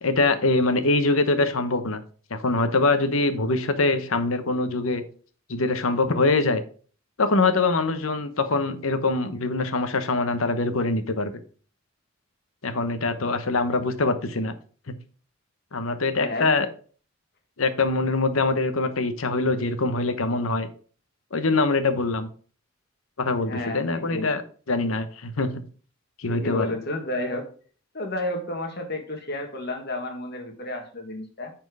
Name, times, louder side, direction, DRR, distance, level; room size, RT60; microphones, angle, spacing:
voice 1, 0.0-2.0 2.3-5.0 5.5-6.6 7.2-11.3 12.6-14.5 15.7-16.7 17.6-20.7 21.3-22.3 23.2-24.4 24.7-25.5 26.2-26.7, left 3 dB, 85° left, 10 dB, 1.0 m, -23 dB
voice 2, 16.1-16.6 23.5-24.3 26.3-27.5 27.9-31.5, left 1 dB, 50° left, 3 dB, 1.7 m, -31 dB
9.4 x 4.5 x 4.8 m, 0.42 s
head